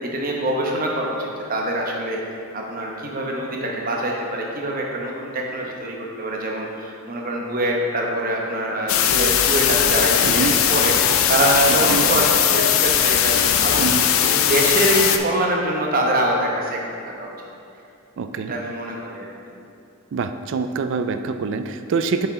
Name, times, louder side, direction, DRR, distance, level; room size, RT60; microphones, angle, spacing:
voice 1, 0.0-2.2 2.5-13.3 13.6-13.9 14.2-16.8 17.2-17.3 18.5-19.3, right 1 dB, 40° right, -1 dB, 0.9 m, -24 dB
sound 1, 8.9-15.2, left 9 dB, 65° left, 0.4 m, -19 dB
voice 2, 10.2-10.6 11.7-12.2 13.8-14.1 18.2-18.5 20.1-22.3, right 4 dB, 55° right, 9 dB, 0.3 m, -25 dB
6.6 x 4.5 x 4.3 m, 2.6 s
head